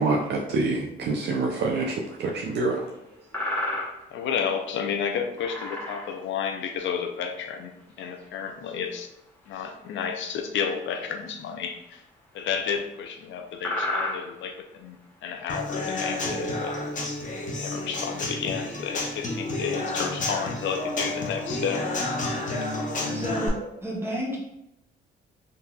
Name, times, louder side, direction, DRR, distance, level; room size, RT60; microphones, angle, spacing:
voice 1, 0.0-2.8, right 3 dB, 60° right, -1 dB, 0.5 m, -26 dB
sound 1, 1.2-1.3 2.9-3.0 3.3-4.1 4.5-4.6 5.4-6.3 7.4-7.5 7.9-8.3 9.5-9.6 11.2-11.4 11.7-11.8 12.5-12.7 13.2-13.3 13.6-14.4 15.5-15.7, left 1 dB, 10° left, 1.2 m, -31 dB
voice 2, 4.1-7.7 8.0-9.1 9.5-12.0 12.3-15.0 15.2-16.7 17.6-21.8 22.2-22.5, left 7 dB, 70° left, 4 dB, 0.5 m, -31 dB
Human voice / Acoustic guitar / Drum, 15.5-23.5, left 2 dB, 40° left, 0.8 m, -30 dB
voice 3, 23.1-24.4, right 1 dB, 10° right, -4 dB, 1.1 m, -31 dB
3.8 x 2.8 x 2.3 m, 0.85 s
cardioid pair, 90°, 20 cm